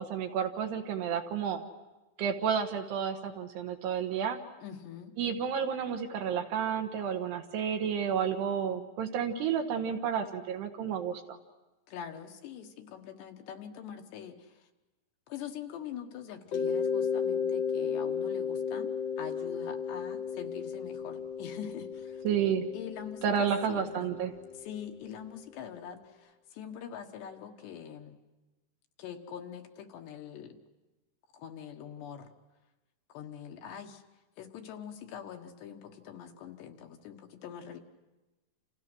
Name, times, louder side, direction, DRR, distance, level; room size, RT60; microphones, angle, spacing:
voice 1, 0.0-1.6 2.2-4.4 5.2-11.4 22.2-22.6 23.2-24.3, right 7 dB, 70° right, 4 dB, 3.3 m, -31 dB
voice 2, 4.6-5.1 11.9-14.4 15.3-18.9 19.2-22.2 22.7-24.1 24.6-28.2 29.0-30.6 31.3-32.3 33.1-34.0 34.4-37.8, left 8 dB, 70° left, 4 dB, 3.3 m, -44 dB
Mallet percussion, 16.5-25.1, left 6 dB, 55° left, 2.0 m, -34 dB
30.0 x 28.5 x 6.2 m, 1.1 s
omnidirectional pair, 5.5 m